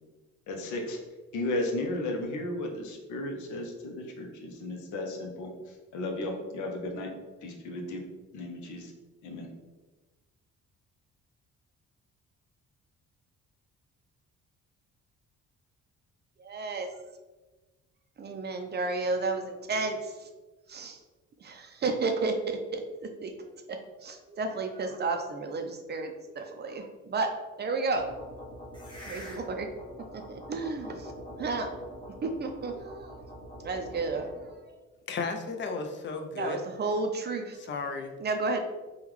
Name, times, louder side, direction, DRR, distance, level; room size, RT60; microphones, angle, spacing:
voice 1, 0.5-1.0 1.3-5.5 5.9-7.1 7.4-8.0 8.3-8.9 9.2-9.5, left 1 dB, 80° left, 3 dB, 0.7 m, -34 dB
voice 2, 16.4-16.9 18.2-20.3 20.7-21.0 21.4-23.3 23.7-28.1 29.1-29.7 30.1-31.1 31.4-31.7 32.2-33.2 33.6-34.3 34.6-34.8 36.4-37.6 38.2-38.6, right 3 dB, 35° right, 5 dB, 0.4 m, -32 dB
sound 1, 27.9-34.5, equal, 15° left, 0.8 m, -44 dB
voice 3, 35.1-36.6 37.7-38.1, left 4 dB, 40° left, 5 dB, 0.5 m, -34 dB
3.5 x 2.3 x 3.1 m, 1.2 s
cardioid pair, 90°, 30 cm